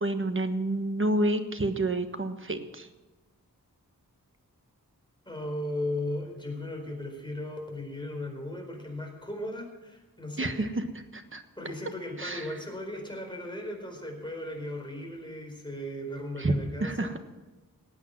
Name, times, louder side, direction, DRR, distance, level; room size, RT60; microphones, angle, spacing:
voice 1, 0.0-2.9 10.4-10.9 11.1-11.4 12.2-12.5 16.4-17.2, right 1 dB, 35° right, 8 dB, 1.4 m, -29 dB
voice 2, 5.3-10.5 11.6-17.1, left 1 dB, 15° left, 1 dB, 4.4 m, -36 dB
19.0 x 8.9 x 6.0 m, 1.1 s
wide cardioid pair, 80°, 35 cm